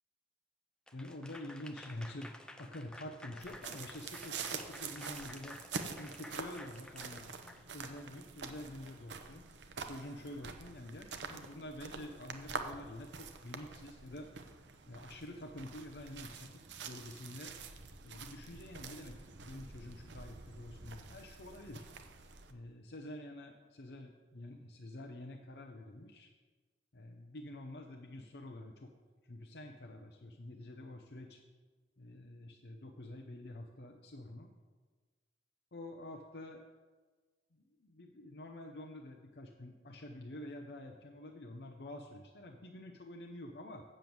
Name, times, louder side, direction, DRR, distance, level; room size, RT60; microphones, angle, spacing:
voice 1, 0.9-5.6 6.0-7.3 7.7-9.4 9.8-14.3 14.9-17.6 18.0-21.9 22.5-26.3 26.9-28.9 29.2-31.4 32.0-34.5 35.7-36.6 37.5-43.8, left 1 dB, 65° left, 2 dB, 0.7 m, -48 dB
Applause / Crowd, 0.9-8.1, left 1 dB, 5° left, 0.5 m, -52 dB
sound 1, 3.4-22.5, right 5 dB, 80° right, 0.8 m, -47 dB
7.6 x 7.0 x 7.8 m, 1.4 s
head